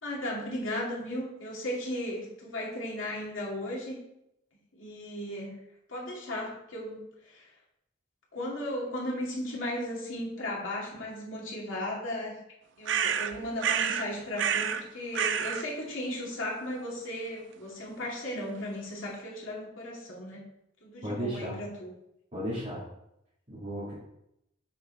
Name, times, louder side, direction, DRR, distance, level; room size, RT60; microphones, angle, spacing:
voice 1, 0.0-4.0 4.7-5.6 5.9-7.5 8.3-12.4 12.8-20.4 20.8-21.9, left 1 dB, 90° left, -3 dB, 2.4 m, -36 dB
sound 1, 12.9-14.1 14.4-14.8 15.1-15.7, right 8 dB, 70° right, 0.5 m, -28 dB
voice 2, 21.0-21.6 22.3-22.9 23.5-23.9, equal, 35° right, -10 dB, 2.6 m, -34 dB
6.9 x 4.7 x 4.5 m, 0.81 s
head